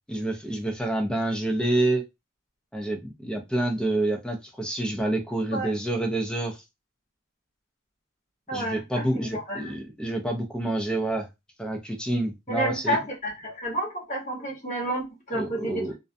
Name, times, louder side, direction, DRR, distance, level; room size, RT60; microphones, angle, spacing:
voice 1, 0.1-2.0 2.7-6.6 8.5-11.3 11.6-13.0 15.3-16.0, right 1 dB, 5° left, 2 dB, 0.4 m, -28 dB
voice 2, 8.5-9.0 9.3-9.7 12.5-15.8, right 1 dB, 35° left, -2 dB, 1.1 m, -30 dB
2.4 x 2.2 x 2.5 m, 0.22 s
head